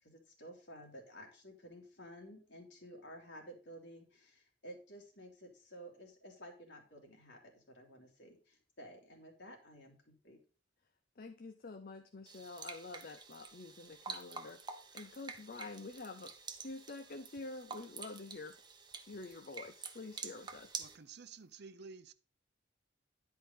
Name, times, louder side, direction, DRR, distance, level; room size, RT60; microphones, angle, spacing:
voice 1, 0.0-10.4, equal, 70° left, 2.7 m, -53 dB
voice 2, 11.2-14.6 14.9-16.3 16.6-18.6 19.1-20.8, left 3 dB, 50° left, 0.7 m, -47 dB
sound 1, 12.3-21.0, right 5 dB, 25° right, 0.9 m, -48 dB
voice 3, 20.8-22.1, right 5 dB, 60° right, 0.6 m, -52 dB
10.5 x 4.7 x 5.3 m
head